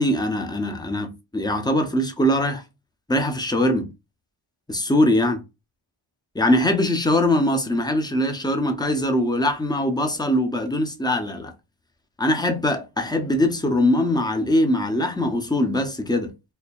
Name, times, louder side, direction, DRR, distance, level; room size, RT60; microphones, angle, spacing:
voice 1, 0.0-2.6 3.1-3.9 4.7-5.4 6.3-11.5 12.2-16.3, left 1 dB, 10° left, 0.8 m, -22 dB
4.4 x 2.9 x 2.4 m
wide cardioid pair, 115°, 49 cm